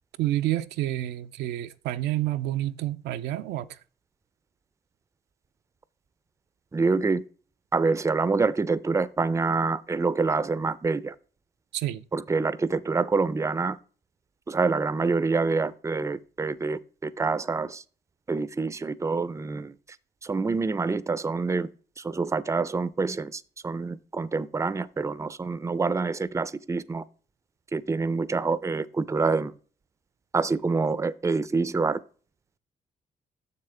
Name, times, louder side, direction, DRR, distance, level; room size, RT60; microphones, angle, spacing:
voice 1, 0.2-3.7 11.7-12.0, right 14 dB, 75° right, 0.4 m, -29 dB
voice 2, 6.7-7.2 7.7-11.2 12.1-13.8 14.5-17.8 18.3-19.7 20.2-21.7 22.0-27.0 27.7-29.5 30.3-32.0, right 4 dB, 15° right, 0.5 m, -26 dB
6.7 x 6.7 x 3.3 m
hypercardioid pair, 50°, 17 cm